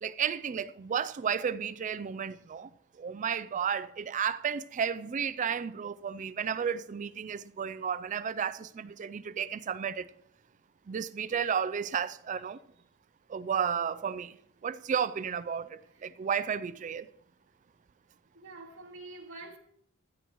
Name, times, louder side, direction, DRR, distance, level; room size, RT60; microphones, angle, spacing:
voice 1, 0.0-2.7 3.0-10.1 10.9-12.6 13.3-14.4 14.6-17.1, right 7 dB, 35° right, 0.3 m, -33 dB
voice 2, 15.8-16.2 18.3-19.6, right 2 dB, 60° right, 2.6 m, -47 dB
16.0 x 12.5 x 3.0 m
head